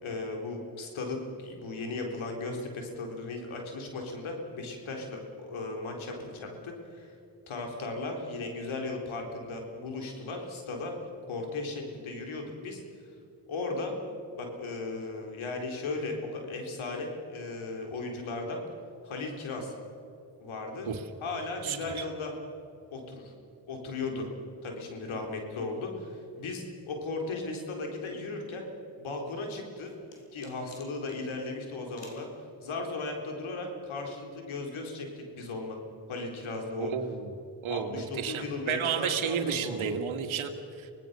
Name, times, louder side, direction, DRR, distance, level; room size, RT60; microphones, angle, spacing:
voice 1, 0.0-7.2 7.5-10.9 11.3-12.8 13.5-14.0 14.3-18.6 19.0-19.7 20.4-20.9 21.2-22.3 22.9-23.3 23.7-24.3 24.6-28.7 29.0-29.9 30.3-32.3 32.6-35.8 36.1-36.9 37.7-39.9, left 3 dB, 85° left, 2 dB, 4.1 m, -36 dB
voice 2, 21.6-22.1 36.8-37.3 37.6-40.9, right 7 dB, 85° right, 7 dB, 1.9 m, -32 dB
sound 1, 29.3-31.2 32.0-32.3, left 3 dB, 65° left, 4.6 m, -52 dB
26.0 x 18.5 x 6.8 m, 2.7 s
cardioid pair, 55°, 47 cm